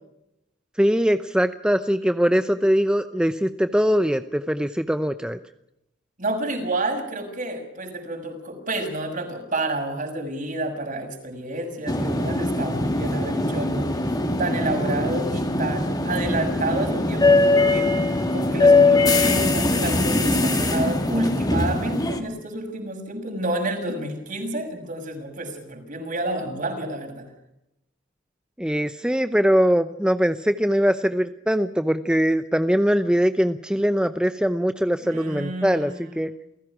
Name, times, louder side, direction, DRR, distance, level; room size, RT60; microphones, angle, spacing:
voice 1, 0.8-5.4 28.6-36.3, equal, 5° right, 9 dB, 0.7 m, -22 dB
voice 2, 6.2-14.0 14.4-27.3 35.0-36.3, right 2 dB, 45° right, 4 dB, 6.7 m, -30 dB
sound 1, 11.9-22.2, left 2 dB, 20° left, 2.9 m, -21 dB
29.0 x 16.5 x 6.1 m, 0.84 s
head